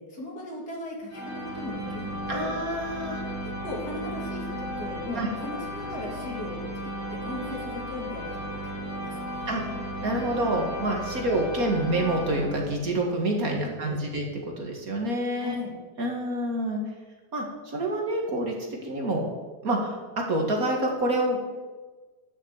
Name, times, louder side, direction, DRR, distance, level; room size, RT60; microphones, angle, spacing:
voice 1, 0.0-2.5 3.4-9.8 11.3-11.4 13.5-14.0 15.4-15.7, left 2 dB, 35° left, -3 dB, 2.6 m, -38 dB
sound 1, 1.1-13.0, equal, 5° left, 1.9 m, -35 dB
voice 2, 2.3-3.2 5.2-5.3 9.5-9.6 10.0-15.6 16.0-16.8 17.3-18.5 18.8-19.3 19.6-21.4, right 1 dB, 35° right, 0 dB, 1.8 m, -27 dB
12.0 x 6.6 x 8.0 m, 1.3 s
omnidirectional pair, 3.3 m